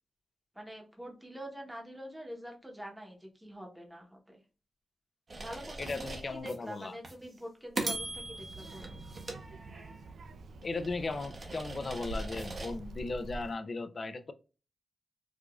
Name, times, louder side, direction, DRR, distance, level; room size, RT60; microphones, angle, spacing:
voice 1, 0.5-4.4 5.4-9.0, equal, 5° right, 0.9 m, -45 dB
sound 1, 5.3-6.6 7.0-7.2 7.8-10.1 10.6-12.8, right 2 dB, 35° right, 0.8 m, -40 dB
voice 2, 5.8-6.9 10.6-14.3, left 3 dB, 35° left, 0.4 m, -37 dB
Child speech kid speaking, 7.9-13.5, right 2 dB, 90° right, 0.4 m, -46 dB
4.8 x 2.5 x 2.3 m
wide cardioid pair, 165°, 0 cm